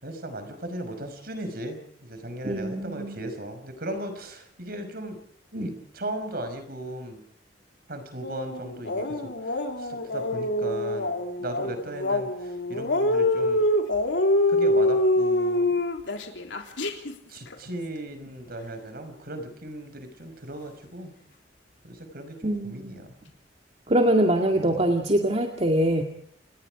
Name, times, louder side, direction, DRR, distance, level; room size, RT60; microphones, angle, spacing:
voice 1, 0.0-5.2 5.5-7.2 7.9-13.7 14.5-15.7 17.3-21.2 21.8-23.2 24.5-24.8, right 1 dB, 55° right, 8 dB, 5.5 m, -37 dB
voice 2, 2.4-3.2 22.4-23.0 23.9-26.0, right 1 dB, 35° right, 3 dB, 2.1 m, -23 dB
sound 1, 8.2-17.1 17.5-17.6, left 1 dB, 85° left, 3.6 m, -25 dB
29.0 x 19.5 x 5.0 m, 0.65 s
head